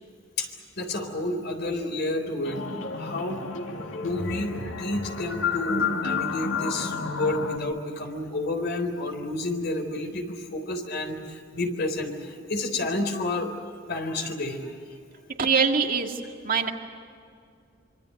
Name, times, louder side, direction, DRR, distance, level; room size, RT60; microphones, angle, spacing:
voice 1, 0.4-2.6 3.0-3.4 3.9-13.5 13.9-14.7, left 2 dB, 60° left, 6 dB, 4.0 m, -30 dB
sound 1, 2.4-7.6, left 5 dB, 80° left, 2.5 m, -31 dB
voice 2, 15.4-16.7, right 5 dB, 45° right, 3 dB, 2.1 m, -24 dB
26.0 x 25.0 x 7.9 m, 2.3 s
head